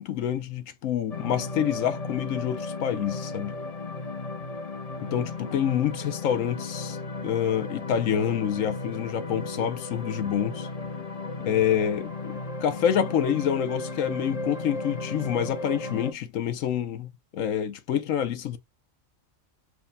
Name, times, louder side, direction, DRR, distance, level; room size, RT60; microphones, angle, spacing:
voice 1, 0.0-3.6 5.0-7.0 7.2-10.7 11.4-18.6, left 9 dB, 75° left, 1.1 m, -27 dB
sound 1, 1.1-16.1, left 3 dB, 40° left, 0.6 m, -35 dB
4.9 x 2.2 x 3.2 m
omnidirectional pair, 1.4 m